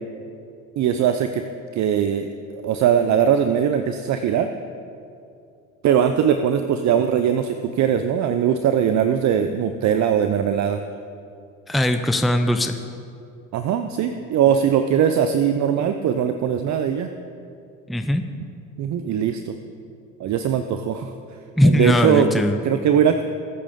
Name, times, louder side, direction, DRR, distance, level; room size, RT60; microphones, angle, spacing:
voice 1, 0.8-1.4 1.7-2.3 2.5-4.5 5.8-10.8 13.5-17.1 18.8-19.5 20.2-21.1 21.6-22.3 22.6-23.2, right 8 dB, 45° right, 8 dB, 0.7 m, -20 dB
voice 2, 11.7-12.8 17.9-18.2 21.6-22.6, left 1 dB, ahead, 7 dB, 0.7 m, -19 dB
22.5 x 8.3 x 3.8 m, 2.5 s
hypercardioid pair, 65°, 38 cm